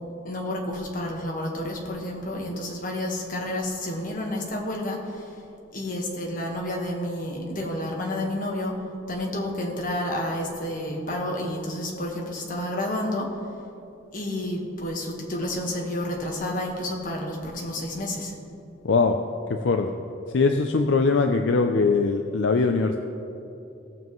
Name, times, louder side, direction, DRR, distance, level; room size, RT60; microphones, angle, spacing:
voice 1, 0.2-5.3 5.7-8.8 9.1-13.3 14.1-18.3, left 1 dB, 45° left, 0 dB, 1.4 m, -30 dB
voice 2, 18.8-19.2 19.5-19.9 20.3-23.0, left 4 dB, 65° left, 5 dB, 0.5 m, -21 dB
18.0 x 7.1 x 3.1 m, 2.8 s
head